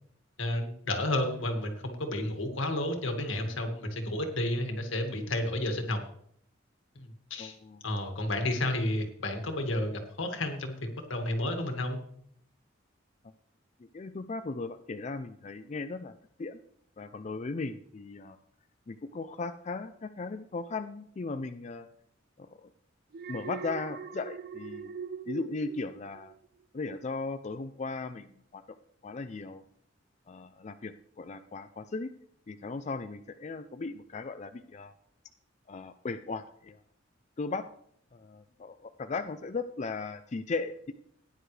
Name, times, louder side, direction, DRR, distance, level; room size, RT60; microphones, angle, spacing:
voice 1, 0.4-6.0 7.0-7.6 7.8-12.0, left 1 dB, 80° left, 5 dB, 2.0 m, -31 dB
voice 2, 7.4-7.8 13.8-16.1 16.4-16.6 17.0-18.4 18.9-21.9 22.4-22.7 23.3-24.9 25.3-26.3 26.7-28.6 29.0-29.6 30.3-32.1 32.5-34.9 35.7-36.8 37.4-37.7 38.1-40.9, left 3 dB, 35° left, 8 dB, 0.4 m, -37 dB
Alarm, 23.1-26.5 26.8-27.2, right 7 dB, 50° right, 0.4 m, -41 dB
16.0 x 10.0 x 3.3 m, 0.67 s
head